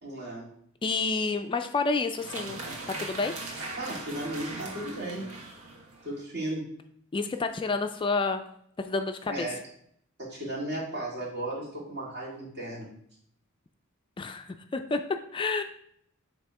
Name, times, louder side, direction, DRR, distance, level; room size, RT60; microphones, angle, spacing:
voice 1, 0.0-0.5 3.8-5.3 6.0-6.7 9.3-9.6 10.2-12.9, right 1 dB, 55° right, -4 dB, 2.2 m, -35 dB
voice 2, 0.8-2.6 3.0-3.3 7.1-8.4 8.8-9.5 14.2-15.0 15.3-15.6, left 4 dB, 25° left, 7 dB, 0.3 m, -29 dB
sound 1, 2.1-6.2, right 2 dB, 90° right, 1.1 m, -39 dB
7.7 x 2.9 x 4.6 m, 0.68 s
head